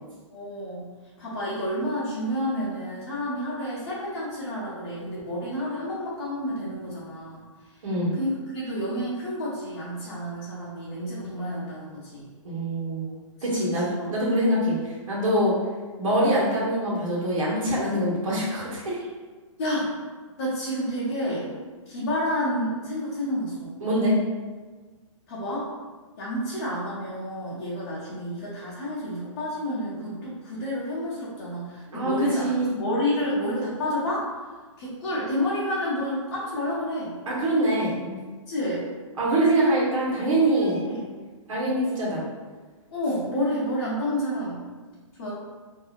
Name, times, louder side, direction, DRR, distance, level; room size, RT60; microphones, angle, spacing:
voice 1, 0.3-0.9 1.2-7.4 8.2-12.3 13.4-14.1 19.6-19.9 20.4-21.5 21.9-23.7 25.3-25.7 26.2-34.3 34.8-37.2 38.5-38.8 40.5-41.0 42.9-44.6 45.2-45.3, equal, 35° left, -10 dB, 0.7 m, -30 dB
voice 2, 7.8-8.1 12.4-15.5 16.0-19.0 23.8-24.2 31.9-32.8 37.3-38.2 39.2-41.0 41.5-42.2, right 1 dB, 75° right, -5 dB, 1.2 m, -24 dB
2.7 x 2.6 x 2.4 m, 1.4 s
hypercardioid pair, 170°, 17 cm